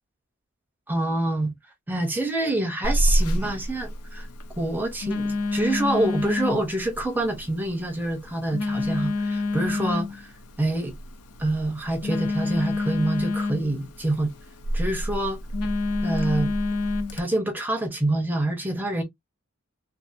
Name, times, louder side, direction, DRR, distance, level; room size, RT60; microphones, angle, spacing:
voice 1, 0.9-1.5 1.9-4.3 4.6-10.3 10.6-10.9 11.4-14.3 14.7-15.4 16.0-16.5 17.1-19.0, right 1 dB, 10° right, 0.6 m, -26 dB
Telephone, 2.8-17.2, left 2 dB, 90° left, 0.5 m, -28 dB
2.7 x 2.4 x 2.4 m
head